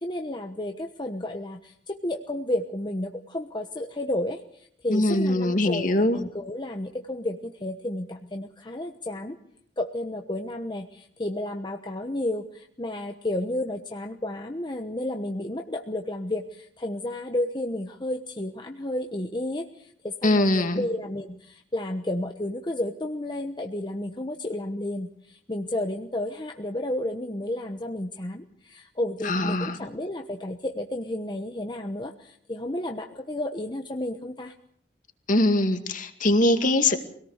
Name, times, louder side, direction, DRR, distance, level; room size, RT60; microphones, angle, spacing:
voice 1, 0.0-9.4 9.8-34.5, left 1 dB, 25° left, 4 dB, 1.1 m, -32 dB
voice 2, 4.9-6.2 20.2-20.9 29.2-29.9 35.3-37.0, left 1 dB, 45° left, 6 dB, 2.3 m, -22 dB
24.5 x 18.0 x 6.6 m, 0.65 s
head